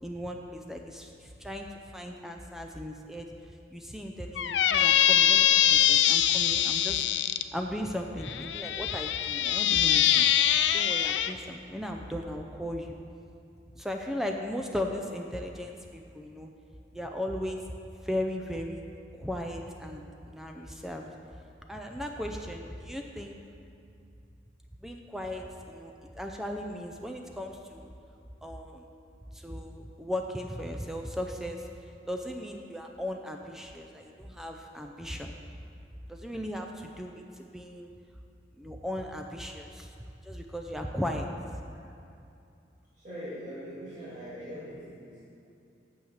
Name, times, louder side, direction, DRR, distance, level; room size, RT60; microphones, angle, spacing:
voice 1, 0.0-7.0 7.5-10.3 10.7-13.0 13.8-16.5 16.9-17.6 18.0-18.8 19.1-21.1 21.7-23.4 24.8-27.9 28.4-28.9 29.3-31.7 32.0-35.3 36.1-37.9 38.6-39.9 40.2-41.3, left 1 dB, ahead, 2 dB, 0.4 m, -37 dB
Squeak, 4.4-7.4 8.3-11.3, left 10 dB, 75° left, 0.4 m, -23 dB
voice 2, 43.0-45.2, equal, 40° right, -13 dB, 2.5 m, -41 dB
8.7 x 7.2 x 6.3 m, 2.6 s
head